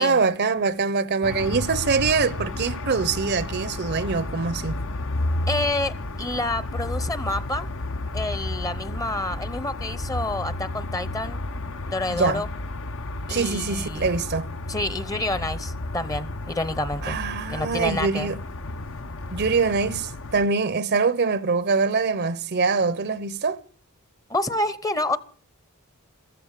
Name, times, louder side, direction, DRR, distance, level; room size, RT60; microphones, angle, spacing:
voice 1, 0.0-4.8 12.1-12.4 13.3-14.5 17.0-18.4 19.3-23.6, right 4 dB, 50° right, 0.7 m, -24 dB
sound 1, 1.2-20.5, left 2 dB, 60° left, 1.0 m, -32 dB
voice 2, 5.5-7.7 8.1-11.4 11.9-12.5 13.3-14.2 14.7-17.2 17.5-18.3 24.3-25.2, left 2 dB, 15° left, 0.9 m, -28 dB
14.5 x 14.0 x 6.6 m
head